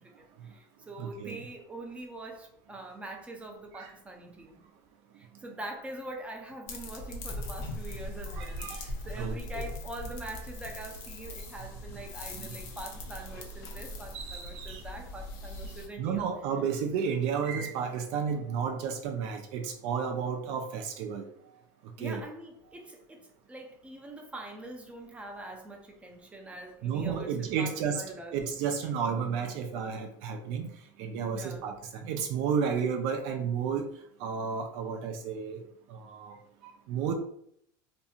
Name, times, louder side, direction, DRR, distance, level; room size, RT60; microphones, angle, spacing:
voice 1, 0.0-4.6 5.1-16.3 22.0-28.4 31.3-31.6, right 1 dB, 10° right, 2 dB, 0.5 m, -44 dB
voice 2, 1.0-1.4 3.7-3.9 8.3-9.7 12.4-12.5 14.1-14.9 16.0-21.3 21.8-22.2 26.8-30.7 31.0-33.9 34.2-35.6 35.9-36.4 36.6-37.1, right 6 dB, 60° right, 4 dB, 0.4 m, -32 dB
sound 1, 6.7-15.9, left 1 dB, 65° left, 0.7 m, -40 dB
2.7 x 2.6 x 2.3 m, 0.69 s
supercardioid pair, 125°, 10 cm